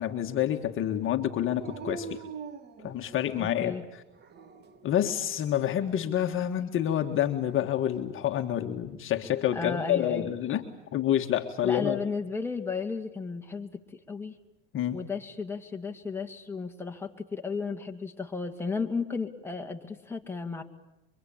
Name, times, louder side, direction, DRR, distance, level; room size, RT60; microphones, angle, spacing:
voice 1, 0.0-2.2 2.8-3.7 4.8-10.6 10.9-12.0 14.7-15.0, left 11 dB, 40° left, 4 dB, 1.8 m, -28 dB
Dog, 1.6-3.5 4.1-4.9 7.2-8.1, right 4 dB, 35° right, 1.8 m, -43 dB
voice 2, 3.4-3.8 9.5-10.3 11.6-14.3 14.9-20.6, left 4 dB, 10° left, 2 dB, 2.6 m, -34 dB
25.0 x 24.5 x 8.7 m, 0.92 s
supercardioid pair, 125°, 31 cm